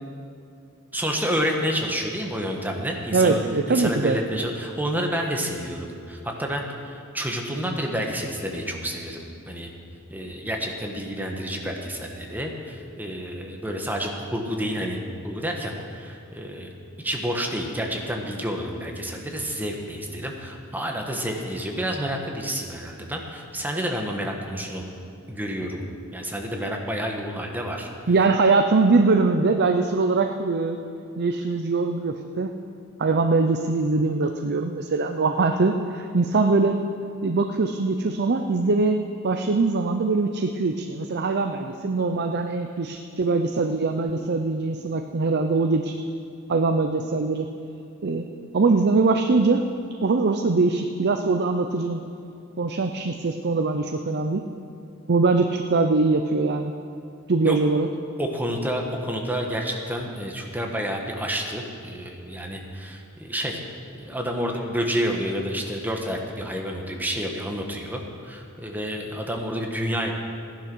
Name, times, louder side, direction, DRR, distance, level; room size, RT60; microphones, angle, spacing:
voice 1, 0.9-3.4 3.7-9.7 10.1-15.0 15.2-16.7 17.0-24.8 25.3-25.9 26.1-27.9 57.4-57.6 58.2-63.6 64.0-70.1, equal, 10° right, 1 dB, 1.4 m, -29 dB
voice 2, 3.1-4.2 28.1-30.8 31.2-32.5 33.0-36.8 37.2-39.0 39.2-45.9 46.5-47.5 48.0-48.3 48.5-49.6 50.0-52.0 52.6-54.4 55.1-56.7 57.3-57.9, right 3 dB, 50° right, 5 dB, 0.6 m, -22 dB
15.0 x 10.5 x 6.2 m, 2.7 s
head